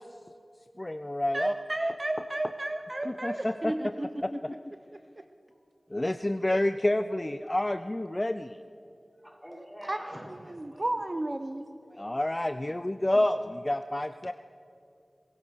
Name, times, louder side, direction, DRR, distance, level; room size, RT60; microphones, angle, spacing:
voice 1, 0.8-1.5 3.2-4.5 5.9-8.6 12.0-14.3, left 1 dB, 30° left, 10 dB, 0.6 m, -29 dB
voice 2, 1.3-3.4 3.6-4.1 4.9-5.2 9.9-10.1 10.5-11.6, right 1 dB, 40° right, 8 dB, 0.9 m, -32 dB
voice 3, 3.0-3.5 9.2-11.3 11.8-12.5, equal, ahead, -2 dB, 6.8 m, -48 dB
26.5 x 16.0 x 6.5 m, 2.5 s
wide cardioid pair, 50°, 0 cm